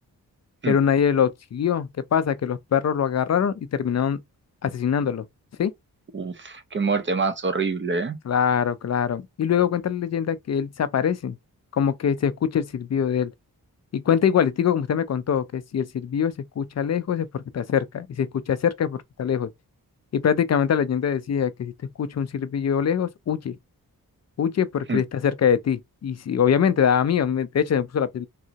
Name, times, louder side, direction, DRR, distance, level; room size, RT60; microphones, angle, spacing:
voice 1, 0.7-4.2 4.6-5.2 5.6-5.7 8.3-11.4 11.7-13.3 13.9-19.5 20.1-21.7 22.0-23.6 24.4-28.3, left 8 dB, 45° left, 0.4 m, -23 dB
voice 2, 6.1-8.2 24.9-25.0, right 4 dB, 30° right, 0.7 m, -26 dB
3.5 x 2.0 x 2.8 m
cardioid pair, 50°, 37 cm